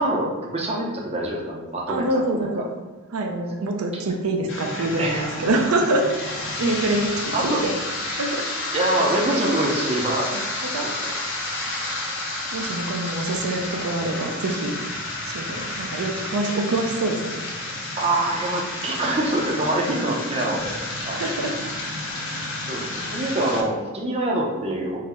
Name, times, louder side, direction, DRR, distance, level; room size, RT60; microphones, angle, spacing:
voice 1, 0.0-2.0 2.3-2.5 5.0-5.3 7.3-7.6 8.7-10.3 10.8-11.1 13.3-13.4 14.1-14.3 18.0-21.2 22.7-22.9 23.1-25.0, right 1 dB, 30° right, -2 dB, 0.5 m, -25 dB
voice 2, 1.8-2.7 3.1-6.1 6.4-7.7 8.2-8.5 9.0-9.6 10.3-10.5 10.7-10.9 12.5-14.7 15.3-17.4 21.1-21.5, right 2 dB, 80° right, 3 dB, 0.5 m, -25 dB
sound 1, 4.5-23.6, left 2 dB, 55° left, 0.7 m, -31 dB
3.7 x 2.0 x 4.2 m, 1.3 s
head